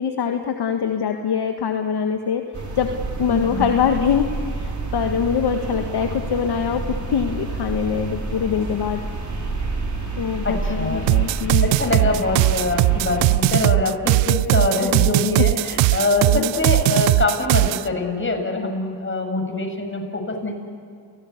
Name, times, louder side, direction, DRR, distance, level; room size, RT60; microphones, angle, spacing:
voice 1, 0.0-2.4 2.8-2.9 3.2-6.8 7.1-9.0 10.2-11.7 16.3-16.5, left 7 dB, 55° left, 5 dB, 1.7 m, -23 dB
sound 1, 2.5-13.4, right 3 dB, 40° right, 6.3 m, -29 dB
voice 2, 3.3-3.7 10.4-11.2 11.6-20.5, left 2 dB, 25° left, 2 dB, 7.5 m, -24 dB
sound 2, 11.1-17.9, right 22 dB, 80° right, 0.6 m, -19 dB
29.0 x 18.5 x 9.8 m, 2.5 s
supercardioid pair, 60°, 46 cm